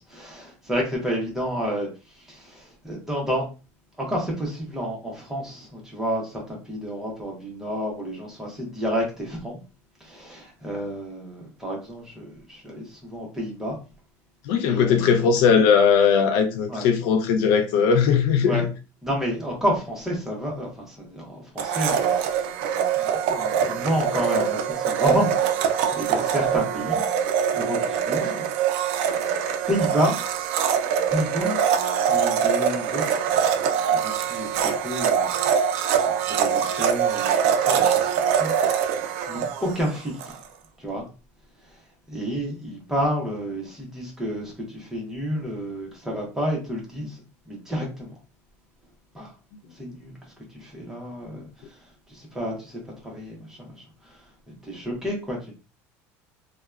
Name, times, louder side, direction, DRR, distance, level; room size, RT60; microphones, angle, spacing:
voice 1, 0.0-1.9 2.1-3.4 4.0-9.6 10.0-13.8 14.7-15.2 16.7-16.9 18.4-18.7 19.0-22.6 23.0-27.1 27.5-28.5 29.1-29.2 29.7-30.2 31.1-31.6 32.1-33.6 33.9-34.0 34.3-35.3 36.1-39.0 39.3-40.3 40.8-41.1 42.1-48.2 49.1-49.3 49.7-50.1 50.5-51.8 52.1-53.7 54.0-54.2 54.6-55.5, equal, 5° right, 0.9 m, -30 dB
voice 2, 14.4-18.7, left 6 dB, 70° left, 0.4 m, -19 dB
Domestic sounds home sounds, 21.6-40.4, right 8 dB, 90° right, 0.4 m, -23 dB
2.8 x 2.2 x 2.3 m
cardioid pair, 160°, 7 cm